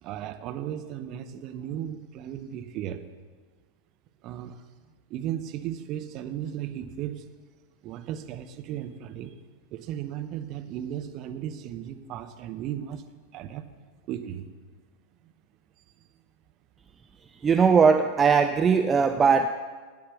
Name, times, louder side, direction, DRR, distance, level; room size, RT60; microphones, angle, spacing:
voice 1, 0.0-3.0 4.2-4.5 5.1-7.2 7.8-9.3 9.7-13.0 13.3-13.7 14.1-14.4, right 10 dB, 40° right, 9 dB, 0.8 m, -35 dB
voice 2, 17.4-19.5, right 5 dB, 20° right, 8 dB, 0.4 m, -19 dB
11.0 x 9.5 x 5.8 m, 1.5 s
figure-of-eight pair, 90°, 0 cm